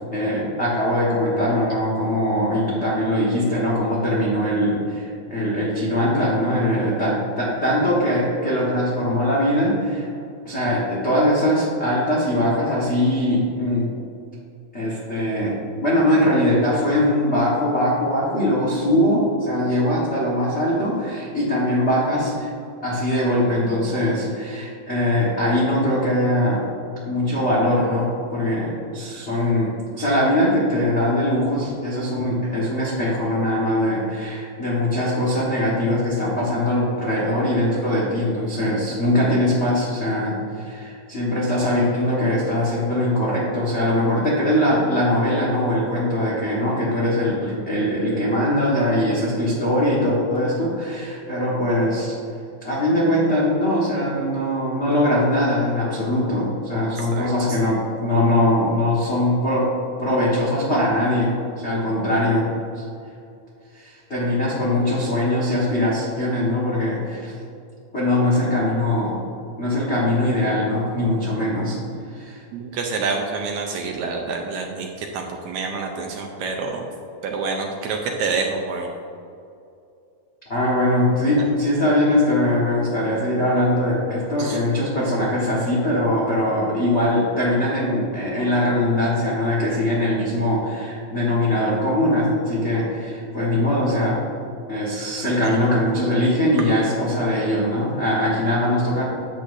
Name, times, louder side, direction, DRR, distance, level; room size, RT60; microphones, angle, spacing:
voice 1, 0.1-10.1 10.4-13.9 14.7-22.5 22.8-26.6 27.0-52.1 52.6-59.7 60.0-62.5 62.7-62.8 63.7-67.3 67.9-69.2 69.6-71.8 72.1-72.4 80.5-94.2 94.7-99.1, left 1 dB, 70° left, -6 dB, 0.6 m, -21 dB
voice 2, 57.0-57.3 72.5-76.8 77.2-78.9 84.4-84.6 95.4-95.5, right 4 dB, 75° right, 2 dB, 1.8 m, -27 dB
10.5 x 8.1 x 2.6 m, 2.6 s
omnidirectional pair, 3.8 m